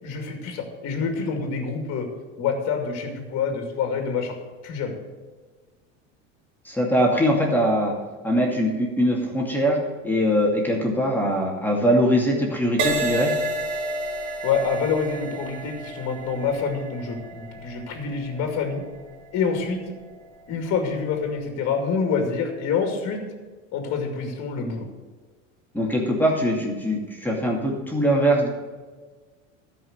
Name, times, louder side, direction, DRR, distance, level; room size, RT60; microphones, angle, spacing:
voice 1, 0.0-2.1 2.4-4.3 4.6-4.9 14.4-18.8 19.3-19.8 20.5-23.2 23.7-24.9, left 5 dB, 40° left, 3 dB, 2.3 m, -26 dB
voice 2, 6.7-7.9 8.2-9.8 10.0-13.3 25.7-28.5, equal, 5° left, -2 dB, 2.4 m, -22 dB
Crash cymbal, 12.8-20.4 21.1-21.4, right 2 dB, 50° right, 2.1 m, -31 dB
12.5 x 5.5 x 7.9 m, 1.4 s
supercardioid pair, 115°, 38 cm